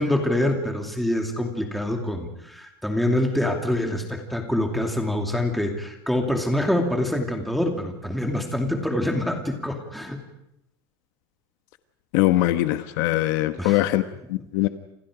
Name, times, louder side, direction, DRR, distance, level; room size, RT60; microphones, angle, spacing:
voice 1, 0.0-10.2 13.6-13.8, left 1 dB, ahead, 2 dB, 2.7 m, -25 dB
voice 2, 12.1-14.0 14.3-14.7, left 16 dB, 55° left, 9 dB, 1.2 m, -21 dB
30.0 x 27.5 x 5.1 m, 0.81 s
supercardioid pair, 175°, 12 cm